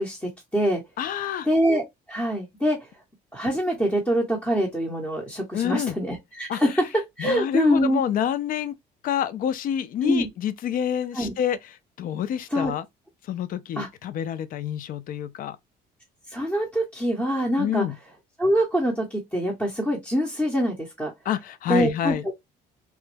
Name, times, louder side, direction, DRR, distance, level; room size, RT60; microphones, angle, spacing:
voice 1, 0.0-0.8 1.4-1.8 2.1-2.8 3.3-6.8 7.2-8.0 10.0-10.3 11.1-11.3 12.5-12.7 13.8-13.9 16.3-17.8 18.4-21.1 21.7-22.1, equal, 10° left, 1.0 m, -24 dB
voice 2, 1.0-1.5 5.5-6.0 6.5-6.6 7.2-8.7 9.0-11.6 12.0-12.8 13.3-15.6 17.6-18.0 21.3-22.3, left 9 dB, 55° left, 0.5 m, -27 dB
3.1 x 2.2 x 3.2 m
cardioid pair, 110°, 17 cm